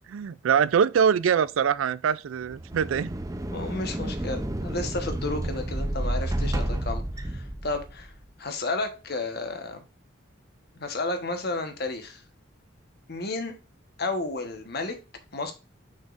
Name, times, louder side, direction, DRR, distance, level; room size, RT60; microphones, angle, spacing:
voice 1, 0.1-3.1, right 7 dB, 80° right, 0.3 m, -23 dB
sound 1, 2.4-8.1, right 1 dB, 15° right, 0.6 m, -30 dB
voice 2, 3.5-8.1 8.4-9.8 10.7-12.2 13.1-13.6 14.0-15.0 15.3-15.5, left 2 dB, 50° left, 1.2 m, -32 dB
6.2 x 6.1 x 2.5 m
head